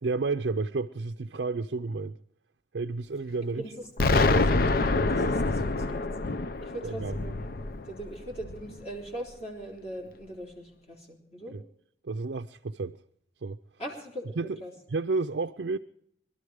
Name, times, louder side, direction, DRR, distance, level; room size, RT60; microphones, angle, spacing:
voice 1, 0.0-2.2 2.7-3.6 4.1-4.5 6.8-7.2 11.5-11.6 12.0-13.0 13.4-13.6 14.4-14.6 14.9-15.8, right 3 dB, 65° right, 0.5 m, -31 dB
Explosion, 4.0-8.8, left 3 dB, 50° left, 0.5 m, -26 dB
voice 2, 4.5-6.1 6.6-11.6 13.8-14.7, right 1 dB, 35° left, 3.7 m, -41 dB
22.5 x 13.0 x 4.8 m
head